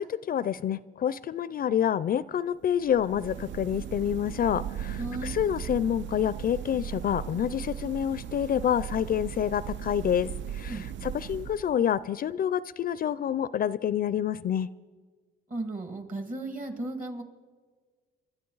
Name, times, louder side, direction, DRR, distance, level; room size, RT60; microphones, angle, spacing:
voice 1, 0.0-14.7, left 9 dB, 50° left, 18 dB, 0.4 m, -28 dB
sound 1, 2.8-12.0, right 10 dB, 70° right, 0.5 m, -38 dB
voice 2, 5.0-5.3 10.7-11.1 15.5-17.2, right 2 dB, 45° right, 6 dB, 2.2 m, -35 dB
28.5 x 12.5 x 3.9 m, 1.5 s
cardioid pair, 90°, 20 cm